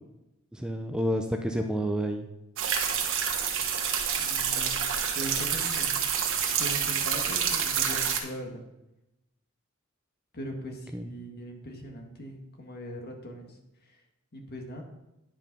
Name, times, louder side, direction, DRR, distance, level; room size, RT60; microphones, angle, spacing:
voice 1, 0.5-2.3 10.7-11.1, equal, 5° right, 4 dB, 0.5 m, -30 dB
sound 1, 2.6-8.2, right 7 dB, 65° right, 1.3 m, -28 dB
voice 2, 4.2-4.8 5.2-6.0 6.5-8.6 10.3-13.6 13.9-14.0 14.3-14.8, equal, 50° left, 2 dB, 1.8 m, -40 dB
10.5 x 5.6 x 5.3 m, 0.93 s
head